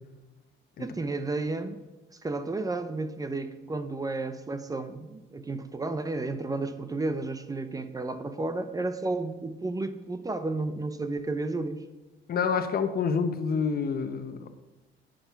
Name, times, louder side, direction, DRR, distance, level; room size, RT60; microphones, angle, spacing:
voice 1, 0.8-1.8 2.1-11.8, right 2 dB, 20° right, 10 dB, 0.7 m, -32 dB
voice 2, 12.3-14.5, left 6 dB, 50° left, 9 dB, 1.0 m, -27 dB
10.5 x 9.1 x 5.8 m, 1.1 s
cardioid pair, 130°, 20 cm